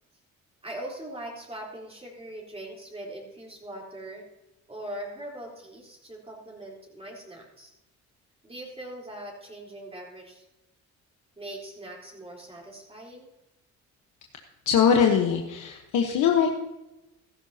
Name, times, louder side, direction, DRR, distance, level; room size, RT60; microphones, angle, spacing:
voice 1, 0.6-4.2 4.7-7.7 8.4-10.4 11.4-13.3, right 1 dB, 20° right, -3 dB, 3.9 m, -41 dB
voice 2, 14.7-16.6, left 7 dB, 85° left, 2 dB, 1.2 m, -22 dB
16.0 x 13.0 x 2.9 m, 0.95 s
cardioid pair, 90°, 30 cm